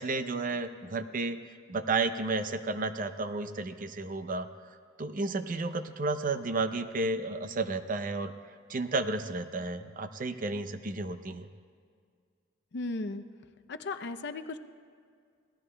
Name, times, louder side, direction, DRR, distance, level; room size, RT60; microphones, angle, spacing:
voice 1, 0.0-1.4 1.7-4.5 5.0-8.3 8.7-11.5, right 3 dB, 45° right, 10 dB, 0.6 m, -32 dB
voice 2, 12.7-13.2 13.7-14.6, left 3 dB, 60° left, 8 dB, 0.5 m, -35 dB
25.0 x 17.5 x 2.2 m, 2.1 s
head